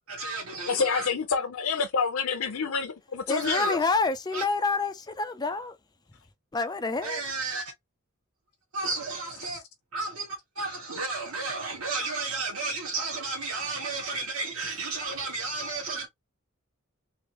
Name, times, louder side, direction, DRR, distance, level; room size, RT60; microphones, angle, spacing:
voice 1, 0.1-1.1 3.3-3.8 4.3-4.4 7.0-7.7 8.7-9.6 9.9-16.1, right 3 dB, 90° right, 1.2 m, -32 dB
voice 2, 0.7-3.8, left 5 dB, 80° left, 0.6 m, -28 dB
voice 3, 3.3-5.8 6.5-7.2, left 3 dB, 20° left, 0.5 m, -28 dB
3.3 x 2.6 x 2.9 m
head